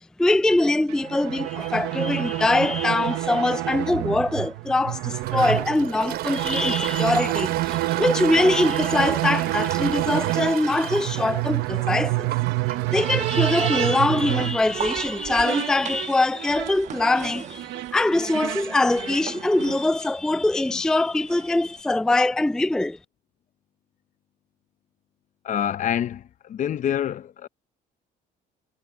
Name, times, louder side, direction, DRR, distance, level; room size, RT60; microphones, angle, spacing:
voice 1, 0.2-12.3 12.7-23.0, left 2 dB, 5° left, 0.4 m, -23 dB
sound 1, 0.9-19.9, right 19 dB, 90° right, 0.9 m, -28 dB
Toilet flush, 5.2-18.6, right 13 dB, 70° right, 5.0 m, -36 dB
sound 2, 14.2-21.8, right 8 dB, 45° right, 1.3 m, -41 dB
voice 2, 25.4-27.5, left 10 dB, 50° left, 0.7 m, -27 dB
cardioid pair, 110°, 17 cm